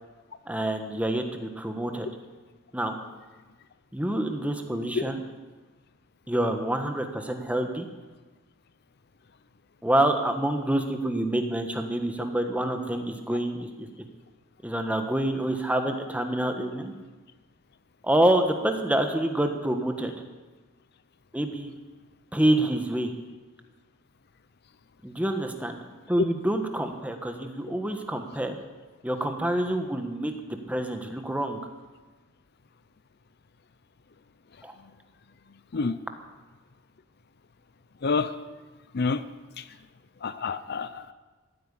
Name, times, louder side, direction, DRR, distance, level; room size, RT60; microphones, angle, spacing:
voice 1, 0.5-2.1 2.7-3.0 3.9-5.2 6.3-7.9 9.8-13.9 14.6-16.9 18.0-20.1 21.3-21.7 22.3-23.1 25.0-25.8 26.1-28.6 29.0-30.3 30.7-31.6 34.6-34.7, right 1 dB, 5° right, 5 dB, 1.3 m, -27 dB
voice 2, 38.0-38.3 38.9-39.2 39.6-39.7 40.2-41.1, left 4 dB, 50° left, 13 dB, 0.6 m, -27 dB
15.0 x 8.9 x 9.9 m, 1.3 s
head